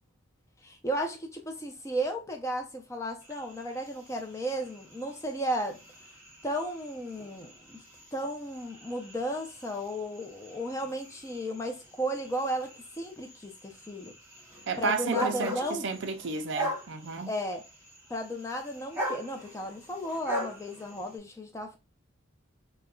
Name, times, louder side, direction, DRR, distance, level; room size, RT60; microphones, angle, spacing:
voice 1, 0.6-5.8 6.4-7.8 8.1-14.1 14.8-15.8 17.3-17.6 18.1-21.8, equal, 15° left, 0.5 m, -34 dB
sound 1, 3.2-21.2, equal, 10° right, 0.9 m, -41 dB
voice 2, 14.7-17.3, right 4 dB, 55° right, 0.4 m, -32 dB
5.0 x 2.1 x 2.3 m
head